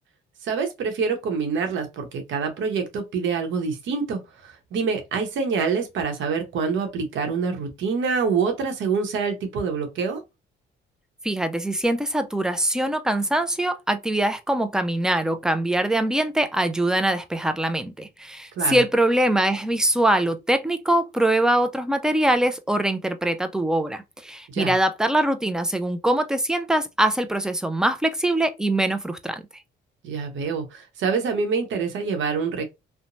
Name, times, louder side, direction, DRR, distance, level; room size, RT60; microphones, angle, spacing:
voice 1, 0.4-10.2 18.6-18.8 24.5-24.7 30.0-32.6, right 5 dB, 75° right, 0.8 m, -26 dB
voice 2, 11.2-29.4, right 1 dB, 5° right, 0.3 m, -23 dB
2.9 x 2.1 x 2.6 m
cardioid pair, 90°, 20 cm